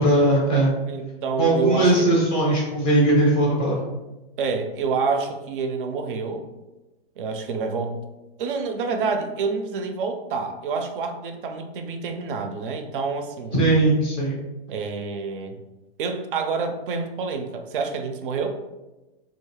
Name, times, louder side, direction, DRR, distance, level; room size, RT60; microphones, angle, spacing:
voice 1, 0.0-0.7 1.4-3.8 13.5-14.4, right 1 dB, 20° left, -4 dB, 0.5 m, -19 dB
voice 2, 0.9-2.1 4.4-6.4 7.2-8.0 8.4-13.6 14.7-15.6 16.0-18.5, right 4 dB, 55° right, 6 dB, 0.4 m, -27 dB
2.3 x 2.0 x 3.2 m, 1.1 s
hypercardioid pair, 145°, 31 cm